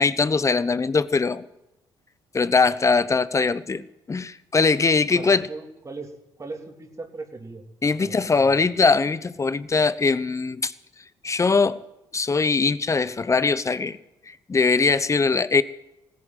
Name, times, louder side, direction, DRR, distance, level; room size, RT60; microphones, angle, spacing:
voice 1, 0.0-1.4 2.3-5.4 7.8-10.7 11.2-11.8 12.1-14.0 14.5-15.6, left 4 dB, 30° left, 0.9 m, -21 dB
voice 2, 5.1-7.7 8.0-8.5, right 3 dB, 30° right, 3.1 m, -38 dB
16.5 x 9.8 x 7.8 m
supercardioid pair, 70°, 11 cm